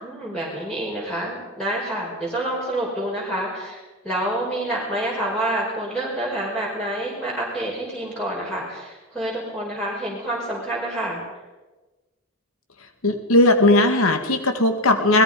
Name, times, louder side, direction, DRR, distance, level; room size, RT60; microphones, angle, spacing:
voice 1, 0.0-11.2, right 1 dB, 5° left, -5 dB, 5.6 m, -28 dB
voice 2, 13.0-15.2, left 2 dB, 85° left, 6 dB, 2.0 m, -17 dB
29.5 x 20.5 x 5.3 m, 1.2 s
head